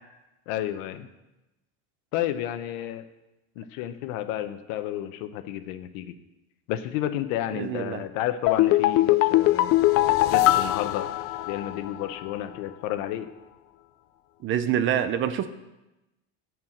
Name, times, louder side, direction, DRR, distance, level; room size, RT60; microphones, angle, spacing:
voice 1, 0.5-1.1 2.1-3.1 3.6-6.1 6.7-9.7 10.3-11.1 11.5-13.3, left 12 dB, 70° left, 10 dB, 0.9 m, -31 dB
voice 2, 7.5-8.0 14.4-15.5, right 10 dB, 35° right, 11 dB, 0.6 m, -26 dB
sound 1, 8.5-11.9 12.2-12.3, left 15 dB, 45° left, 0.4 m, -21 dB
11.0 x 4.7 x 7.8 m, 0.99 s
cardioid pair, 145°, 33 cm